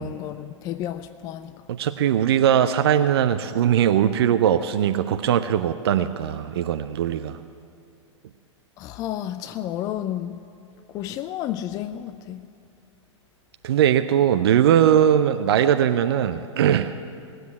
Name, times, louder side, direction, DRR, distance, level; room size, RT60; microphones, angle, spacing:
voice 1, 0.0-1.5 8.8-10.4 10.9-12.4, left 11 dB, 20° left, 0.4 m, -31 dB
voice 2, 1.7-7.4 13.6-16.9, right 9 dB, 55° right, 0.6 m, -20 dB
17.5 x 7.9 x 9.4 m
figure-of-eight pair, 105°, 16 cm